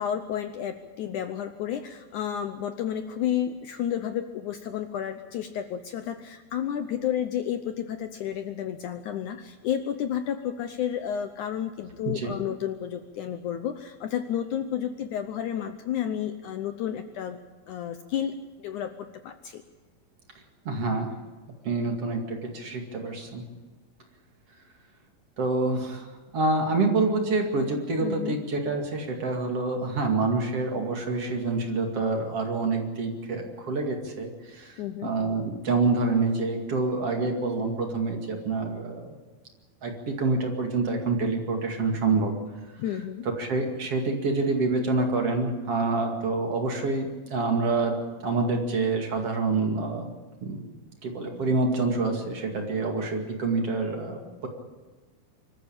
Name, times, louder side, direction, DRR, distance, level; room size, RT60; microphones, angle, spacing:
voice 1, 0.0-17.4 17.7-18.9 19.2-19.6 28.0-28.3 34.8-35.1 42.8-43.3, left 9 dB, 75° left, 9 dB, 2.0 m, -31 dB
voice 2, 20.6-21.1 21.6-23.4 25.4-39.2 39.8-42.4 43.4-48.0 48.2-50.1 50.4-50.6 51.0-54.5, right 3 dB, 45° right, 3 dB, 2.9 m, -27 dB
25.0 x 14.0 x 8.8 m, 1.3 s
omnidirectional pair, 4.3 m